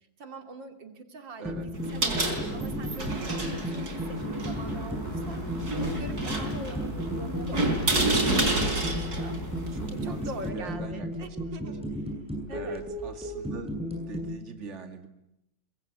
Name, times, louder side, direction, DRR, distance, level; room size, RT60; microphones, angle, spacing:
voice 1, 0.2-9.4 9.9-12.0 12.5-12.9, right 2 dB, 85° right, 6 dB, 3.3 m, -43 dB
sound 1, 1.4-14.3, equal, 5° right, 7.4 m, -35 dB
voice 2, 1.4-1.7 9.7-11.6 12.5-13.7 14.1-15.1, right 4 dB, 40° right, 7 dB, 2.6 m, -42 dB
sound 2, 1.7-10.5, right 2 dB, 55° right, 4.7 m, -30 dB
sound 3, 4.4-9.9, left 2 dB, 25° left, 2.6 m, -40 dB
25.0 x 22.5 x 9.7 m, 0.85 s
omnidirectional pair, 2.0 m